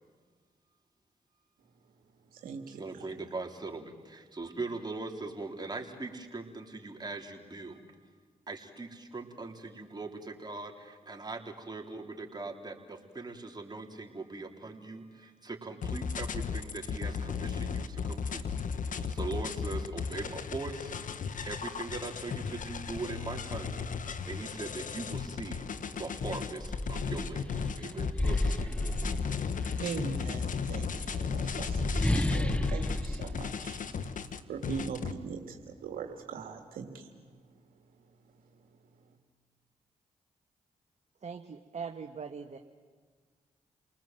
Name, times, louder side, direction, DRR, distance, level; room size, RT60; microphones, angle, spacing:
voice 1, 2.7-7.9 8.5-18.5 19.1-20.9 21.5-29.5, right 3 dB, 30° right, 1 dB, 3.8 m, -41 dB
sound 1, 15.8-35.1, left 6 dB, 65° left, 1.2 m, -35 dB
sound 2, 25.7-25.8 26.2-29.8 30.8-34.4, left 1 dB, 10° left, 1.2 m, -32 dB
voice 2, 29.8-30.9 31.3-33.8 34.5-35.6 35.8-37.0, right 6 dB, 85° right, 4 dB, 1.8 m, -40 dB
voice 3, 41.2-42.6, right 5 dB, 50° right, 5 dB, 1.4 m, -41 dB
29.0 x 19.5 x 7.7 m, 1.6 s
supercardioid pair, 50°, 14 cm